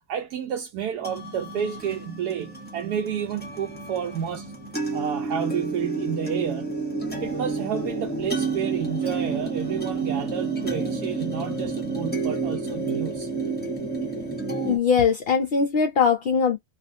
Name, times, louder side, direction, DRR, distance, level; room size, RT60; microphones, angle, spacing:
voice 1, 0.1-4.5 4.9-6.8 7.2-13.3, right 8 dB, 80° right, 1.1 m, -30 dB
sound 1, 1.0-14.8, right 3 dB, 10° left, 0.7 m, -30 dB
voice 2, 14.6-16.6, left 6 dB, 65° left, 0.6 m, -21 dB
2.6 x 2.3 x 2.6 m
omnidirectional pair, 1.7 m